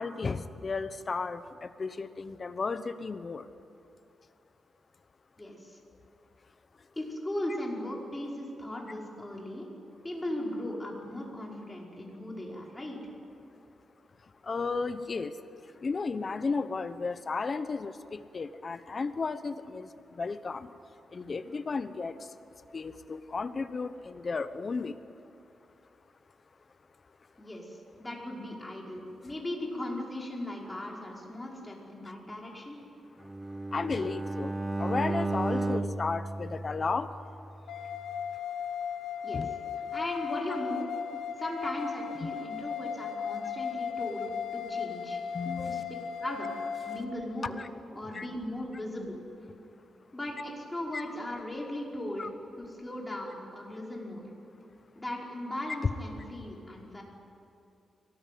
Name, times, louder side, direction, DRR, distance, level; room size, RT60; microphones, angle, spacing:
voice 1, 0.0-3.5 14.4-15.3 15.8-20.7 21.1-22.2 22.7-25.0 33.7-37.1 39.3-39.5 42.2-42.3 45.3-45.9 47.6-47.7 48.1-48.3 50.9-51.0 52.2-52.3, left 4 dB, 40° left, 12 dB, 1.0 m, -34 dB
voice 2, 5.4-5.8 7.0-9.7 10.0-13.0 27.4-32.8 39.2-39.5 39.9-40.9 41.4-45.2 45.7-45.8 46.2-46.5 46.9-47.6 48.0-49.2 50.1-52.3 52.6-54.3 55.0-57.0, left 1 dB, 15° left, -2 dB, 5.3 m, -37 dB
Bowed string instrument, 33.2-37.4, right 2 dB, 15° right, 0.7 m, -33 dB
sound 1, 37.7-47.0, left 7 dB, 85° left, 1.2 m, -36 dB
24.0 x 19.0 x 9.4 m, 2.7 s
cardioid pair, 100°, 0 cm